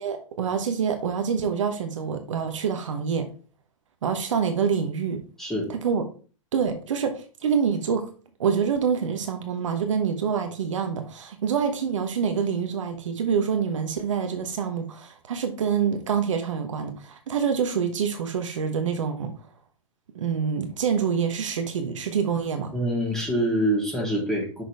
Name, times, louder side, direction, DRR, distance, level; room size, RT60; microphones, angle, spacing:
voice 1, 0.0-3.3 4.0-5.2 5.7-6.0 6.5-8.1 8.4-19.3 20.1-22.7, right 6 dB, 70° right, 1.2 m, -26 dB
voice 2, 5.4-5.7 22.7-24.6, equal, ahead, 3.6 m, -25 dB
6.3 x 6.2 x 3.5 m
hypercardioid pair, 105°, 17 cm